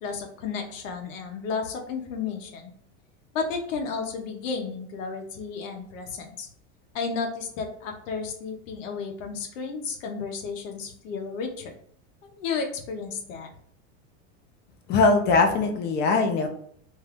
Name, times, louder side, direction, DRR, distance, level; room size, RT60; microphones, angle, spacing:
voice 1, 0.0-2.7 3.3-6.5 6.9-11.7 12.2-13.5, left 5 dB, 90° left, 2 dB, 0.8 m, -33 dB
voice 2, 14.9-16.5, left 3 dB, 30° left, 5 dB, 0.4 m, -21 dB
2.7 x 2.3 x 3.4 m, 0.64 s
supercardioid pair, 150°, 38 cm